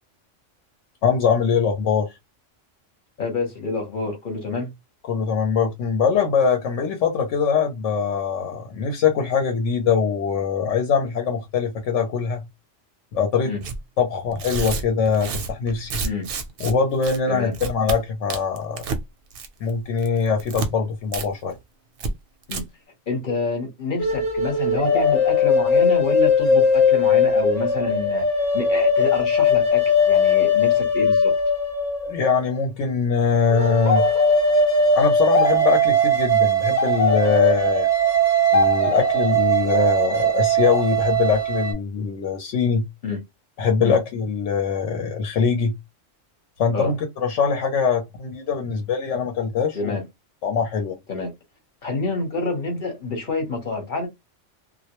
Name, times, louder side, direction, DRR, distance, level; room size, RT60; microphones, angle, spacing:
voice 1, 1.0-2.1 5.1-12.4 13.1-13.5 14.0-16.0 16.6-18.8 19.6-21.5 32.1-34.1 34.9-37.9 38.5-42.9 43.6-45.7 46.6-50.0 50.4-51.0, left 5 dB, 80° left, 0.9 m, -22 dB
voice 2, 3.2-4.7 13.4-13.6 16.0-16.3 17.3-17.5 22.5-22.6 23.1-28.3 28.5-31.3 43.0-43.2 43.8-44.0 46.7-46.9 49.7-50.0 51.1-51.3 51.8-54.1, left 3 dB, 45° left, 0.9 m, -27 dB
Tearing, 13.6-13.8 14.3-16.7 17.0-17.2 17.5-18.0 18.3-19.0 19.3-19.7 20.0-20.7 21.1-21.3 21.5-21.6 22.0-22.1 22.4-22.6, right 4 dB, 65° right, 0.7 m, -29 dB
sound 1, 24.0-32.4 33.5-41.7, left 1 dB, 20° left, 0.6 m, -19 dB
2.3 x 2.0 x 2.8 m
omnidirectional pair, 1.3 m